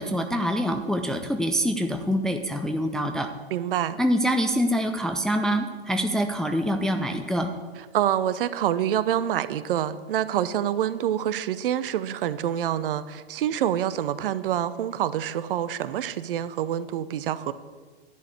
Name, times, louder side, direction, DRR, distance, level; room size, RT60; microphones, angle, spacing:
voice 1, 0.0-3.3 4.0-7.5, equal, ahead, 5 dB, 0.4 m, -25 dB
voice 2, 3.5-4.0 7.9-17.5, right 10 dB, 60° right, 15 dB, 0.7 m, -26 dB
11.0 x 4.8 x 8.1 m, 1.4 s
figure-of-eight pair, 100°, 32 cm